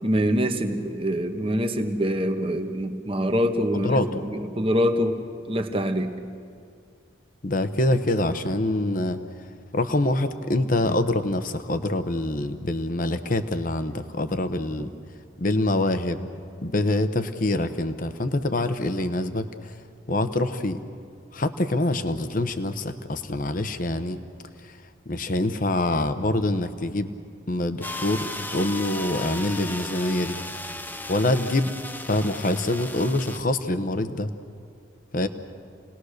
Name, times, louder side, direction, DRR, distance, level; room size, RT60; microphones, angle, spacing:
voice 1, 0.0-5.2 5.5-6.1 14.8-14.9, equal, 25° right, 6 dB, 1.2 m, -25 dB
voice 2, 3.7-4.3 7.4-9.2 9.7-14.9 15.4-16.3 16.6-19.7 20.1-20.8 21.3-24.2 24.6-24.7 25.1-27.1 27.5-30.4 31.1-31.8 32.1-34.3 35.1-35.3, left 1 dB, 40° left, 9 dB, 1.0 m, -25 dB
sound 1, 27.8-33.4, left 2 dB, 10° left, 0.7 m, -35 dB
29.0 x 19.5 x 6.6 m, 2.3 s
head